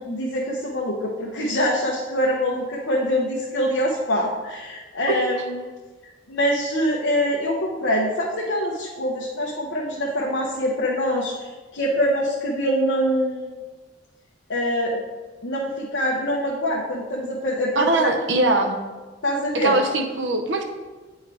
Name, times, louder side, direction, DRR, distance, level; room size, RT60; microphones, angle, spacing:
voice 1, 0.0-5.7 6.3-13.5 14.5-15.0 15.4-18.1 19.2-19.8, equal, 90° left, -3 dB, 0.9 m, -24 dB
voice 2, 17.8-18.8 19.5-20.6, right 2 dB, 75° right, 4 dB, 0.8 m, -21 dB
8.9 x 4.5 x 3.5 m, 1.3 s
head